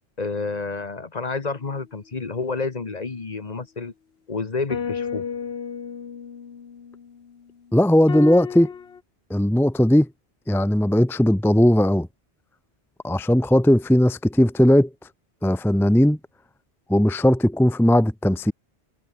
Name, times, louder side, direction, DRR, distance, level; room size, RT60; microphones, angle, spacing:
voice 1, 0.2-3.9 4.3-5.2, left 4 dB, 40° left, 1.3 m, -29 dB
sound 1, 4.7-7.4 8.1-9.0, left 6 dB, 70° left, 1.4 m, -32 dB
voice 2, 7.7-8.7 9.3-10.1 10.5-12.1 13.0-14.9 15.4-16.2 16.9-18.5, left 1 dB, ahead, 0.7 m, -18 dB
omnidirectional pair, 1.1 m